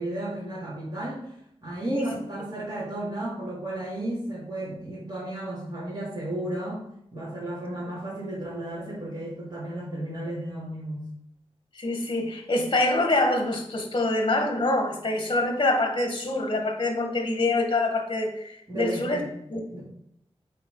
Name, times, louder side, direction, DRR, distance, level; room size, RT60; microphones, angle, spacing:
voice 1, 0.0-1.4 1.6-6.8 7.1-11.1 18.7-19.3 19.7-19.8, right 1 dB, 35° right, -10 dB, 3.0 m, -33 dB
voice 2, 11.8-19.2 19.5-19.6, left 2 dB, 45° left, 3 dB, 1.6 m, -25 dB
8.4 x 4.7 x 3.9 m, 0.75 s
wide cardioid pair, 110°, 11 cm